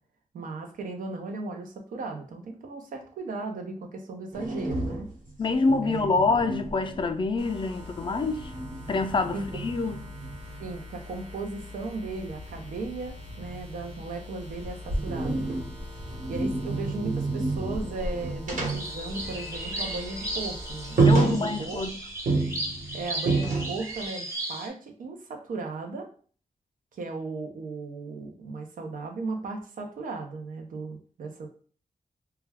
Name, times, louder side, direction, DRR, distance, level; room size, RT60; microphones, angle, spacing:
voice 1, 0.3-5.1 5.8-6.2 9.3-9.5 10.6-15.6 16.3-21.8 22.9-26.1 26.9-31.5, right 3 dB, 90° right, 0.5 m, -36 dB
sound 1, 4.3-7.5 7.8-10.7 12.1-14.1 14.5-19.8 20.1-20.3 20.6-20.7 21.0-21.9 22.3-24.0, right 3 dB, 75° right, 1.1 m, -29 dB
voice 2, 5.4-8.5 8.9-10.1 21.0-21.9, left 3 dB, 35° left, 0.4 m, -26 dB
sound 2, 7.4-21.1, left 3 dB, 50° right, 0.9 m, -44 dB
sound 3, 18.6-24.7, right 1 dB, 20° right, 0.7 m, -36 dB
2.2 x 2.2 x 3.3 m
cardioid pair, 70°, 14 cm